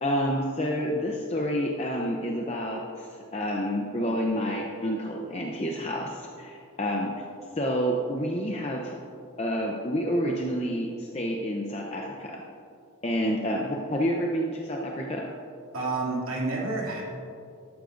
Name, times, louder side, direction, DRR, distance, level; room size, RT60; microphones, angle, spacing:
voice 1, 0.0-7.1 7.6-9.0 9.4-12.4 13.0-15.2, equal, 30° left, -1 dB, 0.7 m, -29 dB
voice 2, 15.7-17.0, right 3 dB, 80° right, -4 dB, 2.6 m, -29 dB
12.5 x 12.0 x 2.6 m, 2.5 s
head